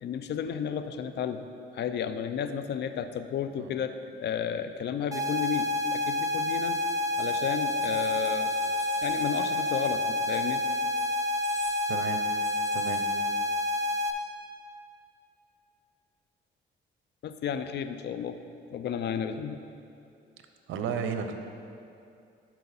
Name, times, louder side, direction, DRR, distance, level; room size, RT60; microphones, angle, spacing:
voice 1, 0.0-1.5 1.7-6.8 7.2-8.5 9.0-10.6 17.2-18.4 18.7-19.6, left 8 dB, 60° left, 10 dB, 0.5 m, -32 dB
sound 1, 5.1-14.1, left 2 dB, 15° right, 0.7 m, -29 dB
Key sounds, 6.3-13.8, left 3 dB, 35° left, 1.2 m, -50 dB
voice 2, 11.9-12.2 12.7-13.0 20.7-21.3, right 7 dB, 80° right, 7 dB, 0.7 m, -32 dB
12.0 x 4.5 x 4.1 m, 2.5 s
cardioid pair, 90°, 20 cm